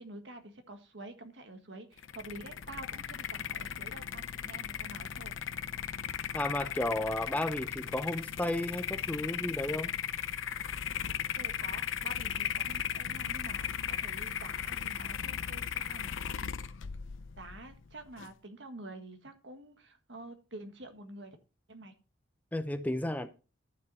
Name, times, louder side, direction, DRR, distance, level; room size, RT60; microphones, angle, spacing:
voice 1, 0.0-5.3 11.4-16.5 17.4-21.4 21.7-21.9, right 2 dB, 60° right, 1.6 m, -48 dB
sound 1, 2.0-18.3, left 8 dB, 75° left, 0.6 m, -37 dB
voice 2, 6.3-9.9 22.5-23.3, left 1 dB, 10° left, 0.5 m, -33 dB
11.5 x 6.7 x 4.1 m
head